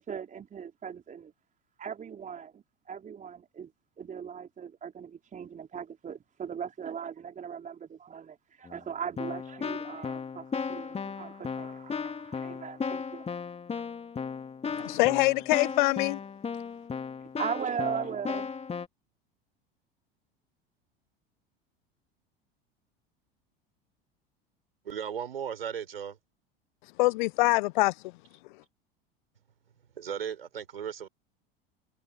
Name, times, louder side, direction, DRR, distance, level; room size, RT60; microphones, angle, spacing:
voice 1, 0.0-1.3 1.8-3.7 4.0-13.3 14.7-14.8 17.4-18.5, right 7 dB, 25° right, 4.4 m, -39 dB
Keyboard (musical), 8.6-8.8 9.2-18.9, left 5 dB, 20° left, 3.2 m, -36 dB
voice 2, 14.7-16.2 27.0-27.9, left 21 dB, 55° left, 0.8 m, -24 dB
voice 3, 24.8-26.2 30.0-31.1, right 8 dB, 75° right, 4.1 m, -36 dB
figure-of-eight pair, 75°, 29 cm